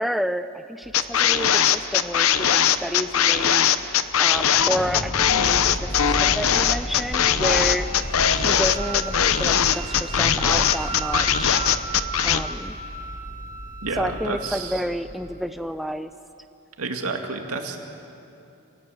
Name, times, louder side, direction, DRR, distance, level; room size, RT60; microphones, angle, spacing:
voice 1, 0.0-3.7 4.2-7.9 8.3-11.6 12.2-12.8 14.0-16.1, equal, ahead, 10 dB, 0.5 m, -30 dB
sound 1, 0.9-12.4, left 9 dB, 65° left, 0.8 m, -20 dB
sound 2, 4.5-15.5, equal, 35° left, 4.9 m, -34 dB
Wind instrument woodwind instrument, 6.4-14.5, right 5 dB, 35° right, 1.5 m, -36 dB
voice 2, 13.8-14.8 16.8-17.8, right 3 dB, 70° right, 4 dB, 2.3 m, -30 dB
27.5 x 18.5 x 7.8 m, 2.7 s
head